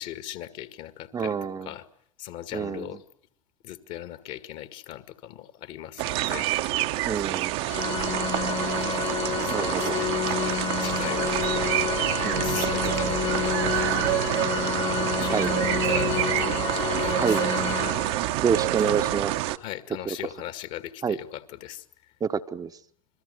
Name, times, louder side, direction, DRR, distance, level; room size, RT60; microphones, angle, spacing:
voice 1, 0.0-1.4 1.6-1.9 2.2-3.0 3.6-6.5 8.1-8.3 9.4-11.7 12.4-14.2 15.1-16.6 16.9-17.6 18.8-19.1 19.6-21.8, left 13 dB, 50° left, 2.1 m, -38 dB
voice 2, 1.1-1.7 2.5-2.9 6.2-6.3 7.1-7.6 9.5-10.0 12.2-12.5 15.3-15.5 17.2-17.4 18.4-19.3 20.1-20.2 21.0-21.2 22.2-22.7, right 6 dB, 20° right, 1.1 m, -27 dB
sound 1, 6.0-19.6, right 16 dB, 55° right, 1.2 m, -27 dB
Organ, 7.7-18.5, left 9 dB, 30° left, 1.6 m, -29 dB
27.5 x 22.5 x 8.0 m
figure-of-eight pair, 80°, 17 cm